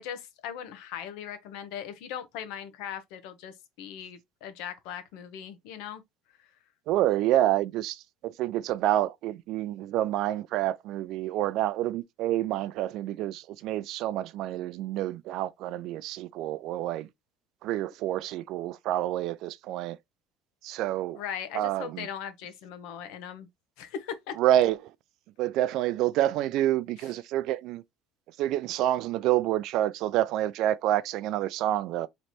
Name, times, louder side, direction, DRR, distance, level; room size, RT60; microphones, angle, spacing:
voice 1, 0.0-6.0 21.1-23.5 23.8-24.4, left 9 dB, 70° left, 0.9 m, -39 dB
voice 2, 6.9-17.1 17.6-20.0 20.6-21.2 21.5-22.1 24.4-24.9 25.4-27.8 28.4-32.1, right 13 dB, 55° right, 0.4 m, -28 dB
3.2 x 2.9 x 4.2 m
cardioid pair, 165°, 0 cm